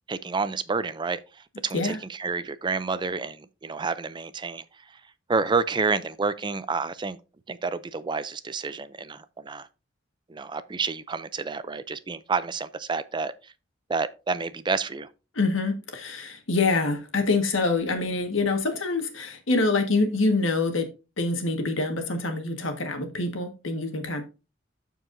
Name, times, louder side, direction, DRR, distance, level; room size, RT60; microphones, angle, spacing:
voice 1, 0.1-1.2 1.6-4.6 5.3-7.2 7.5-9.7 10.3-13.3 13.9-15.1, right 4 dB, 25° right, 0.4 m, -29 dB
voice 2, 15.3-20.9 21.2-24.2, left 3 dB, 85° left, 1.5 m, -25 dB
13.5 x 4.7 x 2.6 m
head